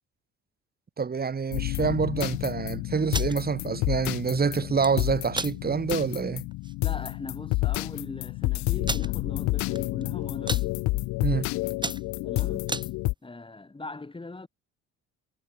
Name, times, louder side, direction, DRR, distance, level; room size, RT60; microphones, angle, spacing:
voice 1, 1.0-6.4 11.2-11.5, right 5 dB, 30° right, 2.2 m, -27 dB
sound 1, 1.5-13.1, left 22 dB, 75° left, 0.6 m, -30 dB
sound 2, 3.0-3.4 4.6-4.9 5.3-5.5 6.0-6.1 6.5-6.7 7.5-7.6 7.8-7.9 8.8-9.1 9.7-10.0 10.3-10.7 11.2-11.4 11.7-12.9, right 2 dB, 15° right, 4.8 m, -32 dB
voice 2, 6.8-10.8 12.2-12.8 13.2-14.5, left 3 dB, 15° left, 3.9 m, -40 dB
supercardioid pair, 75°, 29 cm